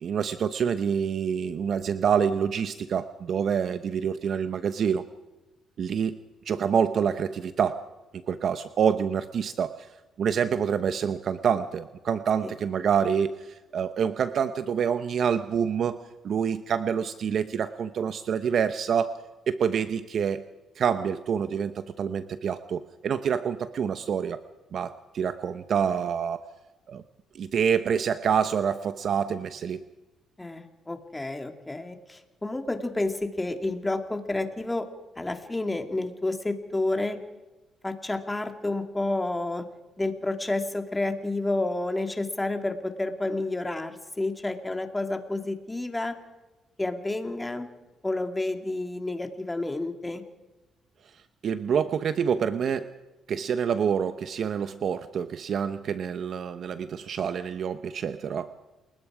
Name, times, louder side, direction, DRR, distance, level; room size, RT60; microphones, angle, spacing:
voice 1, 0.0-5.0 5.8-6.2 6.5-7.8 8.3-9.9 10.2-16.0 16.2-19.2 19.5-20.4 20.8-24.4 24.7-26.5 26.9-27.0 27.3-29.8 51.4-52.9 53.3-58.5, right 7 dB, 60° right, 11 dB, 0.9 m, -27 dB
voice 2, 30.4-34.9 35.2-37.2 37.8-39.7 40.0-46.2 46.8-47.7 48.0-50.2, left 2 dB, 15° left, 6 dB, 2.5 m, -30 dB
29.0 x 20.5 x 5.0 m, 1.1 s
cardioid pair, 90°, 0 cm